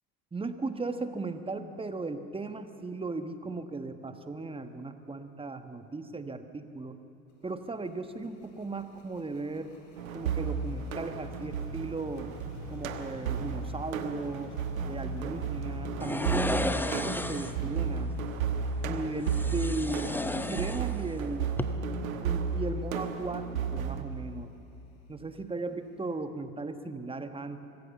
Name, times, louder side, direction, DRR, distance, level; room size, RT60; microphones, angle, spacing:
voice 1, 0.3-7.0 7.4-9.7 10.1-12.3 12.7-14.5 14.9-18.1 18.8-21.5 22.2-24.5 25.1-27.6, right 3 dB, 15° right, 9 dB, 1.3 m, -36 dB
sound 1, 7.3-26.1, left 3 dB, 45° left, 4.1 m, -49 dB
sound 2, 10.0-24.0, right 5 dB, 80° right, 1.4 m, -33 dB
sound 3, 16.0-17.6 19.2-21.2 21.5-21.6, left 1 dB, 5° left, 0.8 m, -33 dB
24.5 x 16.0 x 7.2 m, 2.6 s
hypercardioid pair, 80°, 40 cm